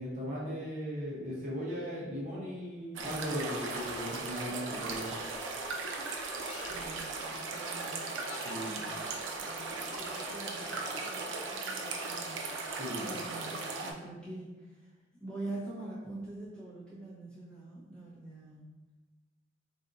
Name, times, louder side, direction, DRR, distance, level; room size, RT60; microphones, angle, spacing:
voice 1, 0.0-5.1 8.4-8.8 12.8-13.1, equal, 40° right, -7 dB, 0.7 m, -38 dB
sound 1, 2.9-13.9, right 3 dB, 70° right, 0.4 m, -38 dB
sound 2, 3.5-4.1 4.8-5.3 6.4-6.9 8.1-8.7 9.9-10.7, left 5 dB, 80° left, 0.3 m, -49 dB
voice 2, 6.7-8.2 8.5-18.8, right 2 dB, 5° left, -10 dB, 0.9 m, -45 dB
3.4 x 2.6 x 2.5 m, 1.2 s
head